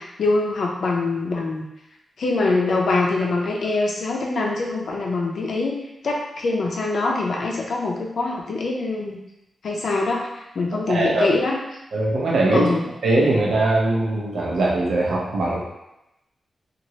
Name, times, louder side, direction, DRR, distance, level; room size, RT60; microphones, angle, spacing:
voice 1, 0.0-1.6 2.2-5.8 6.0-9.2 9.6-10.2 10.6-11.6 12.5-12.8, left 3 dB, 65° left, -1 dB, 0.5 m, -23 dB
voice 2, 10.9-11.3 11.9-12.7 13.0-15.6, right 2 dB, 75° right, -3 dB, 0.7 m, -21 dB
3.0 x 2.4 x 2.8 m, 0.89 s
wide cardioid pair, 175°, 0 cm